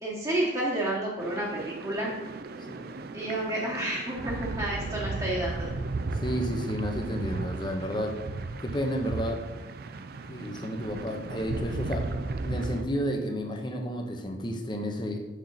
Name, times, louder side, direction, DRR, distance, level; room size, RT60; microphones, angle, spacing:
voice 1, 0.0-2.1 3.1-5.7, right 1 dB, 20° right, -6 dB, 1.2 m, -30 dB
sound 1, 1.2-12.8, right 3 dB, 55° right, 0.4 m, -35 dB
voice 2, 6.1-8.2 8.6-9.4 10.3-12.1 12.4-15.2, equal, 25° left, 3 dB, 0.9 m, -31 dB
6.5 x 6.5 x 4.0 m, 1.1 s
head